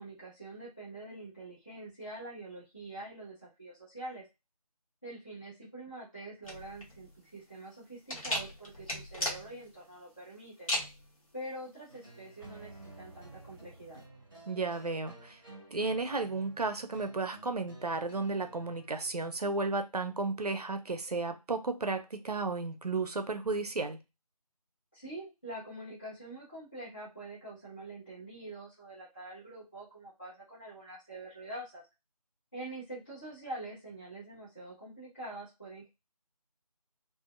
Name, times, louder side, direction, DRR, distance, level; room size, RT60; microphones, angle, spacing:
voice 1, 0.0-4.3 5.0-10.7 11.3-14.0 24.9-31.8 32.5-35.9, right 1 dB, 15° left, 0.6 m, -45 dB
sound 1, 6.4-14.0, left 1 dB, 60° left, 1.1 m, -38 dB
sound 2, 11.9-19.3, right 2 dB, 35° right, 0.7 m, -53 dB
voice 2, 14.5-15.4 15.7-24.0, right 3 dB, 75° right, 0.6 m, -33 dB
2.5 x 2.2 x 2.4 m
figure-of-eight pair, 165°, 20 cm